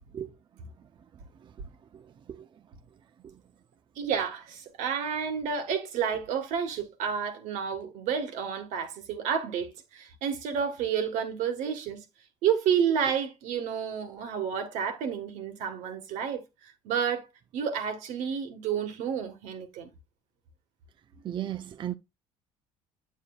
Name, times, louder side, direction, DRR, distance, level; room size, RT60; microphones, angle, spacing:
voice 1, 4.0-12.0 12.4-16.4 16.8-17.3 17.5-19.9, right 7 dB, 75° right, 1.5 m, -30 dB
voice 2, 21.2-21.9, right 11 dB, 40° right, 0.4 m, -35 dB
8.3 x 7.5 x 2.4 m
cardioid pair, 95°, 12 cm